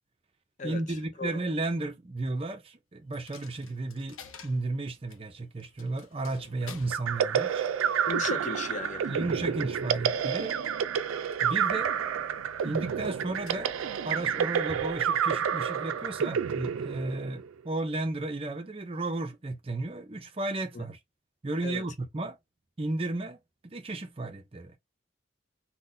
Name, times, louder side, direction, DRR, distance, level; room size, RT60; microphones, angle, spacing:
voice 1, 0.6-4.2 4.4-7.7 9.1-10.6 11.4-11.9 12.6-13.7 14.0-21.0 21.4-22.4 22.8-24.8, right 2 dB, 30° right, 0.5 m, -33 dB
Coin (dropping), 3.1-16.9, left 5 dB, 85° left, 0.6 m, -53 dB
sound 1, 6.9-17.5, right 7 dB, 90° right, 0.4 m, -29 dB
voice 2, 8.1-9.2 20.7-20.8 21.6-21.8, left 4 dB, 35° left, 0.4 m, -35 dB
3.8 x 2.1 x 2.6 m
head